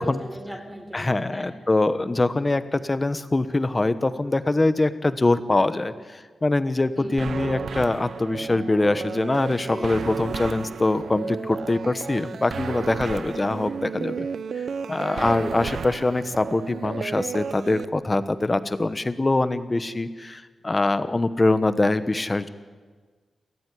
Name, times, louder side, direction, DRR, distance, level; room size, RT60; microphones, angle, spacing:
voice 1, 0.0-1.6 7.0-7.3 9.6-9.9 13.0-13.8 15.0-15.2, equal, 5° right, 4 dB, 4.0 m, -39 dB
voice 2, 0.9-14.3 14.5-22.5, left 2 dB, 20° left, 12 dB, 1.0 m, -23 dB
sound 1, 7.2-17.8, right 6 dB, 65° right, 0.7 m, -33 dB
28.5 x 14.0 x 9.9 m, 1.5 s
wide cardioid pair, 155°, 0 cm